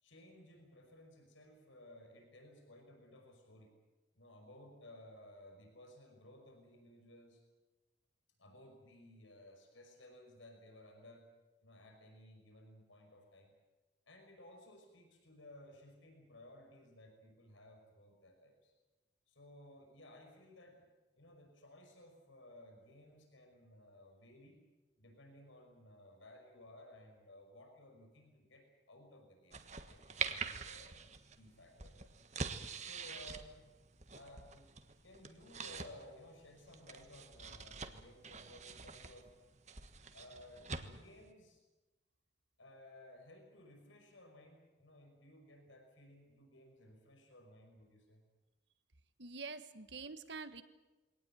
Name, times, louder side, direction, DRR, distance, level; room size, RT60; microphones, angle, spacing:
voice 1, 0.0-3.8 4.1-7.4 8.4-11.3 11.6-13.5 14.1-18.7 19.3-20.9 21.2-24.6 25.0-31.0 31.3-32.1 32.8-33.7 34.1-34.7 35.0-39.3 40.1-41.6 42.6-48.2, left 1 dB, 85° left, 3 dB, 5.7 m, -58 dB
sound 1, 29.5-41.3, right 5 dB, 35° right, 1.4 m, -46 dB
voice 2, 49.2-50.6, right 4 dB, 65° right, 11 dB, 1.5 m, -46 dB
22.5 x 18.5 x 9.2 m, 1.1 s
head